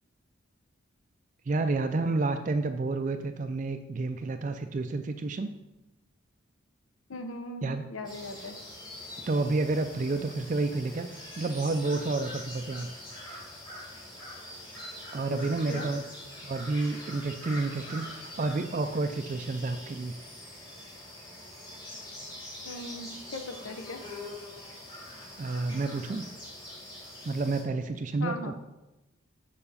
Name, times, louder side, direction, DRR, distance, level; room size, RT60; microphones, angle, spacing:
voice 1, 1.5-5.5 7.6-7.8 9.2-12.9 15.1-16.0 16.4-20.1 25.4-26.3 27.2-28.5, right 3 dB, 40° right, 7 dB, 0.3 m, -30 dB
voice 2, 7.1-8.6 15.3-15.4 15.7-15.9 22.6-24.0 28.2-28.5, left 2 dB, 80° left, 7 dB, 0.8 m, -39 dB
sound 1, 8.0-27.6, left 1 dB, 20° left, 1.9 m, -44 dB
6.8 x 4.8 x 5.5 m, 1.0 s
head